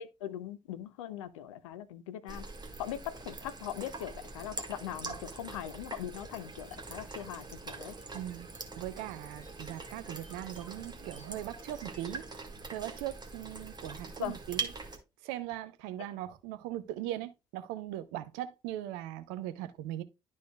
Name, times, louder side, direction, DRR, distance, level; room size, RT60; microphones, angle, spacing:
voice 1, 0.0-2.5 2.8-7.9 14.2-14.3, left 11 dB, 75° left, 0.6 m, -40 dB
sound 1, 2.3-15.0, right 3 dB, 25° right, 1.6 m, -43 dB
sound 2, 6.7-12.2, right 2 dB, 90° right, 1.0 m, -59 dB
voice 2, 8.1-12.3 12.7-14.6 15.2-20.0, right 13 dB, 70° right, 0.6 m, -39 dB
12.0 x 4.2 x 2.3 m
figure-of-eight pair, 40°, 16 cm